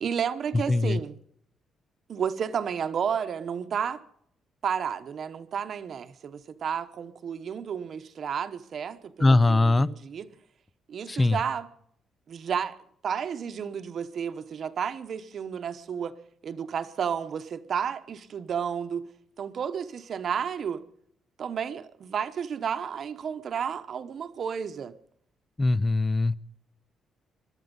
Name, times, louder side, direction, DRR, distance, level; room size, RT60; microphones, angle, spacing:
voice 1, 0.0-1.2 2.1-4.0 4.6-10.3 10.9-11.7 12.3-12.7 13.0-16.1 16.4-19.1 19.4-20.8 21.4-24.9, right 7 dB, 50° right, 1.0 m, -32 dB
voice 2, 0.7-1.0 9.2-9.9 11.1-11.4 25.6-26.4, left 2 dB, 20° left, 0.6 m, -21 dB
21.5 x 12.5 x 5.4 m
cardioid pair, 120°, 0 cm